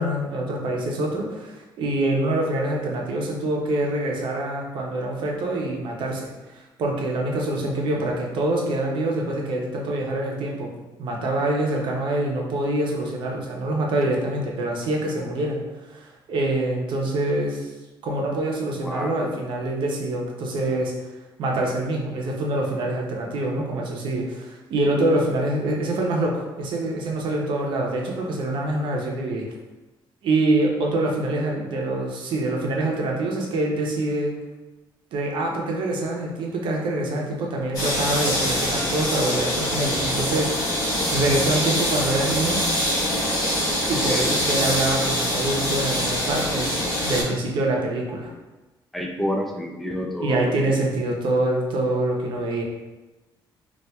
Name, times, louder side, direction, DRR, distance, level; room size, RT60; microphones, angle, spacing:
voice 1, 0.0-10.7 11.0-15.6 15.9-17.7 18.0-20.9 21.4-29.5 30.2-34.3 35.1-40.5 41.1-42.6 43.9-48.3 50.2-52.6, right 2 dB, 70° right, -1 dB, 0.6 m, -25 dB
voice 2, 18.8-19.2 44.1-44.4 48.9-50.7, equal, ahead, 1 dB, 0.3 m, -29 dB
sound 1, 37.7-47.2, equal, 45° left, 1.1 m, -24 dB
4.2 x 2.4 x 2.2 m, 1.1 s
cardioid pair, 150°, 9 cm